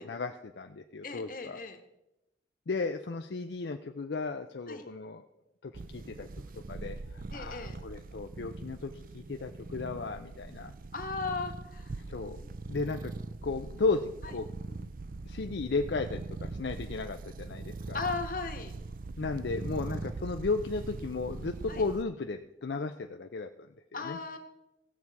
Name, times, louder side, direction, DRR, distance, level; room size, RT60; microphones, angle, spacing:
voice 1, 0.0-1.6 2.7-5.3 5.6-6.3 6.5-10.7 12.1-12.4 12.7-13.1 13.4-14.9 15.2-18.0 19.2-24.2, left 3 dB, 70° left, 6 dB, 0.5 m, -35 dB
voice 2, 1.0-1.8 4.7-4.8 7.3-7.8 10.9-12.0 14.2-14.3 17.9-18.7 21.7-21.8 23.9-24.4, left 4 dB, 50° left, 5 dB, 1.3 m, -36 dB
sound 1, 5.7-22.0, right 3 dB, 50° right, 0.5 m, -41 dB
16.0 x 7.2 x 4.7 m, 0.91 s
head